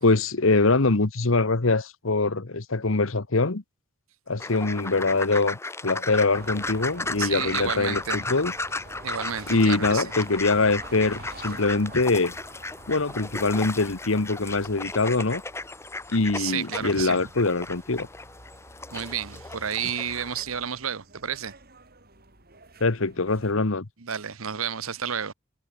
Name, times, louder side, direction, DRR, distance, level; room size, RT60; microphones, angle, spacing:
voice 1, 0.0-3.6 4.3-8.5 9.5-12.3 12.9-15.4 16.1-18.1 22.8-23.9, left 3 dB, 70° left, 1.2 m, -23 dB
sound 1, 4.4-20.4, left 3 dB, 15° left, 0.9 m, -35 dB
sound 2, 6.3-23.5, right 2 dB, 45° right, 6.2 m, -48 dB
voice 2, 7.2-8.2 9.0-10.0 16.4-17.2 18.9-21.5 24.0-25.3, right 8 dB, 80° right, 1.1 m, -31 dB
head